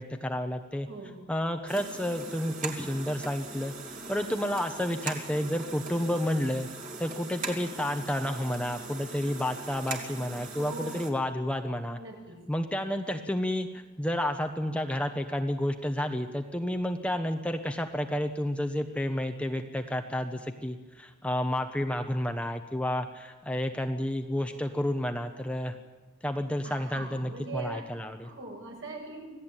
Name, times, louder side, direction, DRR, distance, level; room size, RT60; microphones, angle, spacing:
voice 1, 0.0-0.9 1.3-3.7 4.1-6.7 7.0-12.0 12.5-25.8 26.2-28.3, left 1 dB, 5° left, 5 dB, 1.0 m, -31 dB
voice 2, 0.9-1.2 10.5-11.0 12.0-12.4 26.6-27.9 28.2-29.3, right 3 dB, 60° right, 0 dB, 7.6 m, -41 dB
sound 1, 1.7-11.1, right 4 dB, 40° right, 3.2 m, -40 dB
26.0 x 17.0 x 9.0 m, 1.2 s
head